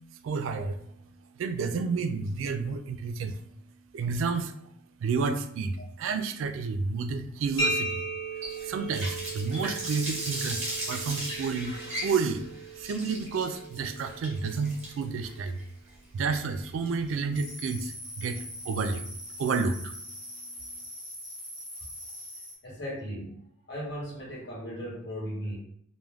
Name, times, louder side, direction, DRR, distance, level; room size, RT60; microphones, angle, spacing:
voice 1, 0.2-0.8 1.4-3.4 3.9-4.5 5.0-8.0 8.6-11.8 12.0-12.5 12.8-15.6 16.1-19.0 19.4-19.9, right 4 dB, 80° right, 8 dB, 0.3 m, -30 dB
sound 1, 7.6-15.1, right 2 dB, 75° left, 0.9 m, -37 dB
Water tap faucet, 8.4-17.3, right 1 dB, 35° right, 0.8 m, -37 dB
sound 2, 17.3-22.6, equal, 5° left, 0.6 m, -42 dB
voice 2, 22.6-25.6, equal, 60° left, -5 dB, 1.1 m, -37 dB
2.3 x 2.2 x 3.2 m, 0.65 s
head